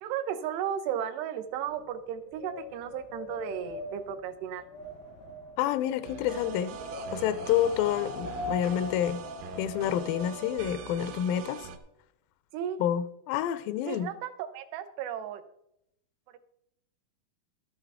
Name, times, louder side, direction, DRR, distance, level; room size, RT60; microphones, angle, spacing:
voice 1, 0.0-4.6 12.5-12.8 13.9-15.4, right 9 dB, 90° right, 9 dB, 2.9 m, -34 dB
Wind, 1.6-10.8, left 2 dB, 55° left, 0.8 m, -41 dB
voice 2, 5.6-6.8 7.1-9.2 9.6-11.7 12.8-14.1, left 10 dB, 85° left, 13 dB, 2.0 m, -28 dB
sound 1, 6.0-11.8, right 7 dB, 70° right, 2.3 m, -43 dB
13.0 x 11.0 x 3.5 m, 0.79 s
omnidirectional pair, 4.6 m